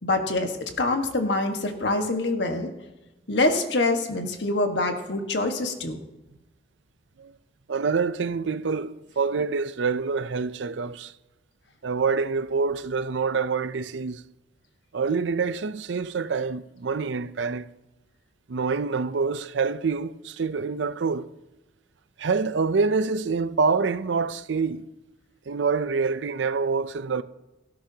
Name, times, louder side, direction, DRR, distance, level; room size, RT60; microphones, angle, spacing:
voice 1, 0.0-2.7 3.3-6.0, left 2 dB, 75° left, 1.5 m, -25 dB
voice 2, 7.7-11.1 11.8-14.2 14.9-17.7 18.5-21.3 22.2-24.8 25.5-27.2, right 4 dB, 85° right, 0.5 m, -26 dB
17.0 x 13.5 x 2.8 m
head